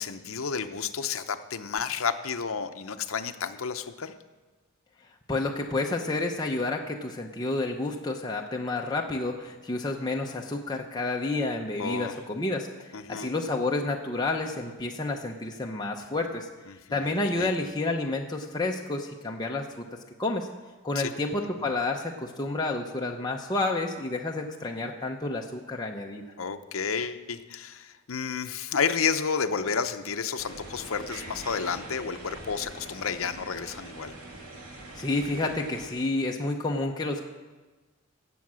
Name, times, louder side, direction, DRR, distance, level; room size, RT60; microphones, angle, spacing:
voice 1, 0.0-4.1 11.8-12.1 12.9-13.3 16.7-17.1 17.3-17.5 21.0-21.1 26.4-34.1, left 6 dB, 65° left, 8 dB, 0.7 m, -31 dB
voice 2, 5.3-16.5 16.9-19.7 20.2-20.5 20.8-26.2 34.9-37.2, left 2 dB, 20° left, 0 dB, 0.7 m, -30 dB
sound 1, 30.4-35.9, right 1 dB, 85° right, 2.3 m, -43 dB
16.5 x 7.6 x 6.2 m, 1.3 s
head